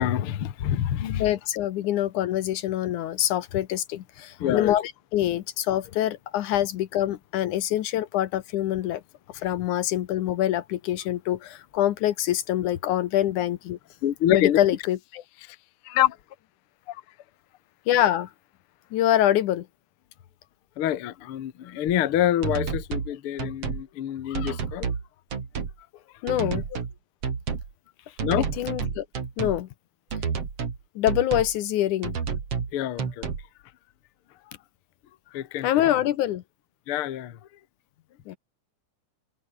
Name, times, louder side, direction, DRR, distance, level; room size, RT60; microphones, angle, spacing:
voice 1, 0.0-1.2 4.4-4.8 14.0-14.6 15.9-16.2 16.9-17.0 20.8-24.9 28.2-28.5 32.7-33.3 35.3-35.7 36.9-37.4, left 11 dB, 55° left, 1.8 m, -26 dB
voice 2, 1.2-9.0 9.4-13.8 14.3-15.2 17.9-18.3 18.9-19.7 26.2-26.6 28.6-29.1 29.4-29.7 31.0-32.2 35.6-36.4 38.3-38.4, left 12 dB, 75° left, 2.4 m, -25 dB
sound 1, 21.9-22.0 22.4-23.1 23.4-23.8 24.3-25.0 25.3-25.7 26.3-26.9 27.2-27.7 28.2-29.6 30.1-30.8 31.1-31.5 32.0-32.7 33.0-33.4, right 6 dB, 50° right, 3.7 m, -30 dB
omnidirectional pair, 3.7 m